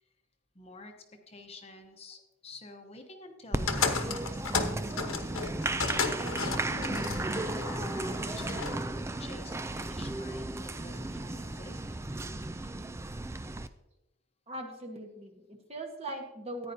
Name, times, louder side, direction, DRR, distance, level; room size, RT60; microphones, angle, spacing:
voice 1, 0.5-0.9 1.3-5.6 6.0-7.9 8.3-11.8, left 2 dB, 30° left, 4 dB, 1.0 m, -49 dB
Applause, 3.5-13.7, right 2 dB, 15° right, 0.3 m, -35 dB
sound 1, 3.7-8.8, left 4 dB, 70° left, 1.2 m, -33 dB
voice 2, 14.5-16.7, right 1 dB, 30° right, 3 dB, 1.3 m, -40 dB
14.5 x 9.8 x 2.8 m, 0.95 s
head